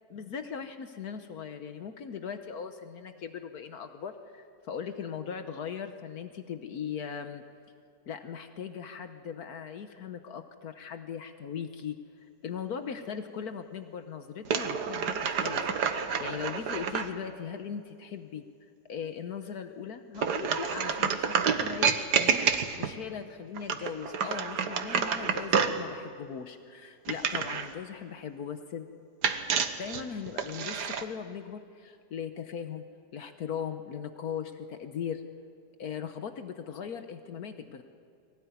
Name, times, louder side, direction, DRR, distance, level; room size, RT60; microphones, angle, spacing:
voice 1, 0.1-7.4 8.1-18.4 18.9-22.4 22.8-28.9 29.8-32.8 33.1-35.2 35.8-37.8, left 7 dB, 70° left, 8 dB, 1.5 m, -39 dB
sound 1, 14.4-17.1 20.2-23.0 23.5-25.8 27.1-27.7 29.2-31.0, right 6 dB, 85° right, 1.7 m, -29 dB
22.5 x 17.5 x 9.5 m, 2.4 s
omnidirectional pair, 1.7 m